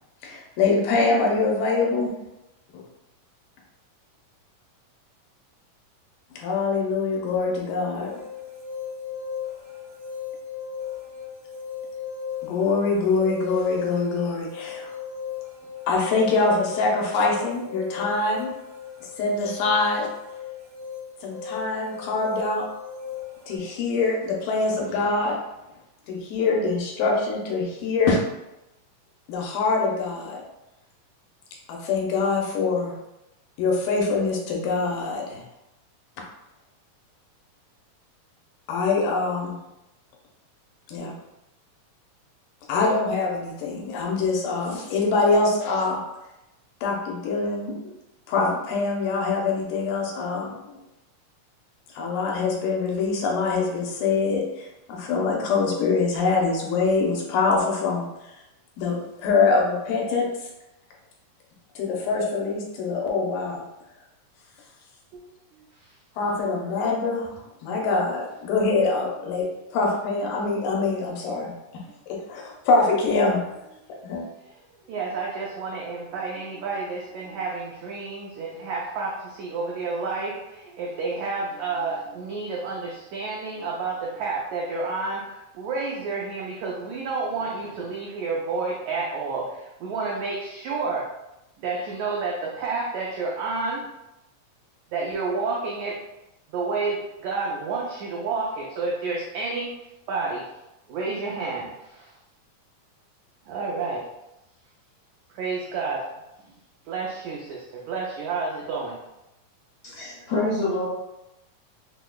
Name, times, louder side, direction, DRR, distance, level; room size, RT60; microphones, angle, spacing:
voice 1, 0.2-2.1 2.7-2.8 6.4-8.2 12.4-14.9 15.9-18.5 19.2-20.1 21.2-22.7 23.5-25.4 26.1-28.2 29.3-30.4 31.7-32.9 33.6-35.4 38.7-39.6 40.9-41.1 42.7-46.0 46.8-47.8 48.3-50.8 51.9-58.1 58.8-60.3 61.8-63.6 66.2-67.3 67.6-71.5 72.3-73.4 74.0-74.3, left 3 dB, 90° left, -2 dB, 2.3 m, -24 dB
sound 1, 7.9-23.6, left 7 dB, 70° right, 1.8 m, -37 dB
voice 2, 65.1-65.9 73.9-74.1 74.4-91.1 91.6-93.9 94.9-96.0 96.5-99.7 100.1-100.5 100.9-102.1 103.5-104.0 105.3-106.1 106.9-109.0, right 4 dB, 90° right, -3 dB, 1.6 m, -30 dB
voice 3, 109.8-110.9, left 2 dB, 70° left, -8 dB, 1.5 m, -26 dB
6.2 x 2.1 x 2.3 m, 0.92 s
omnidirectional pair, 3.8 m